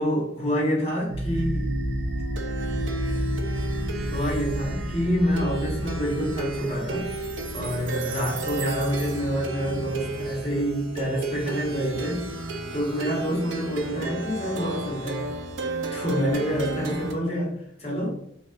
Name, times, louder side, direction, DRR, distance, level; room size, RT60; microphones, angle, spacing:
voice 1, 0.0-1.7 4.1-7.1 7.5-15.2 15.9-17.5 17.8-18.1, equal, 30° left, 0.9 m, -27 dB
Plucked string instrument, 1.1-17.1, right 2 dB, 75° right, 0.4 m, -31 dB
3.2 x 2.3 x 2.5 m
head